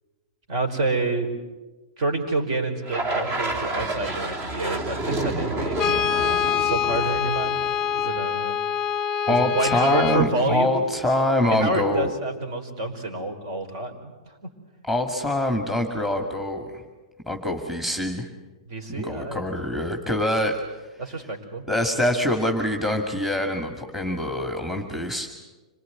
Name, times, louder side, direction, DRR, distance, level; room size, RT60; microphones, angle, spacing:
voice 1, 0.5-1.3 2.0-7.6 8.0-8.6 9.3-10.8 11.4-14.3 18.7-19.4 21.0-21.6, right 2 dB, 50° right, 5 dB, 5.1 m, -28 dB
sound 1, 2.9-8.2, right 2 dB, 35° right, 2.4 m, -30 dB
Brass instrument, 5.8-10.3, left 8 dB, 15° left, 0.9 m, -25 dB
voice 2, 9.3-12.1 14.9-16.8 17.3-18.3 18.9-20.6 21.7-25.3, left 1 dB, 5° right, 4 dB, 2.1 m, -24 dB
26.5 x 19.5 x 9.7 m, 1.2 s
hypercardioid pair, 150°, 4 cm